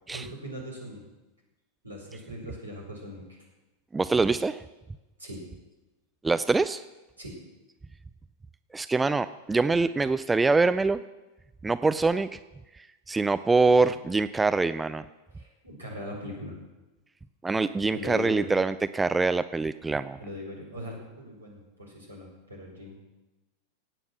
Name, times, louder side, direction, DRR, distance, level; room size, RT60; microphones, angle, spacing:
voice 1, 0.1-1.0 1.8-3.4 5.2-5.4 7.2-7.4 15.3-16.6 17.9-18.5 20.2-23.0, left 1 dB, 80° right, 0 dB, 4.5 m, -40 dB
voice 2, 3.9-4.6 6.2-6.8 8.7-11.0 11.6-12.3 13.1-15.0 17.4-20.2, right 3 dB, 10° right, 13 dB, 0.4 m, -24 dB
16.5 x 9.0 x 6.2 m, 1.1 s
figure-of-eight pair, 90°, 0 cm